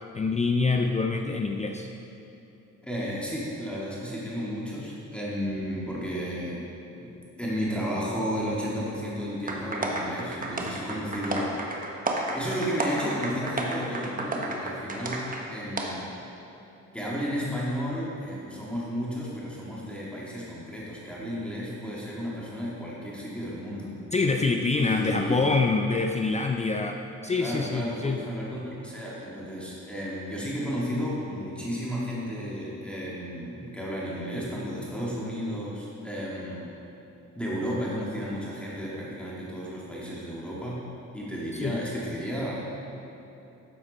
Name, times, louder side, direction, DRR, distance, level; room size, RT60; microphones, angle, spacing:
voice 1, 0.1-1.9 24.1-27.0 27.2-28.2 41.5-41.8, left 3 dB, 25° left, 4 dB, 0.4 m, -25 dB
voice 2, 2.8-6.6 7.0-7.1 7.4-11.6 12.3-16.1 16.9-23.9 24.8-25.5 27.4-36.7 37.4-40.8 41.1-42.7, equal, 5° left, -7 dB, 2.0 m, -33 dB
sound 1, 9.5-15.4 15.8-15.9, right 2 dB, 30° right, 1.2 m, -31 dB
10.0 x 7.1 x 4.2 m, 3.0 s
cardioid pair, 90°, 30 cm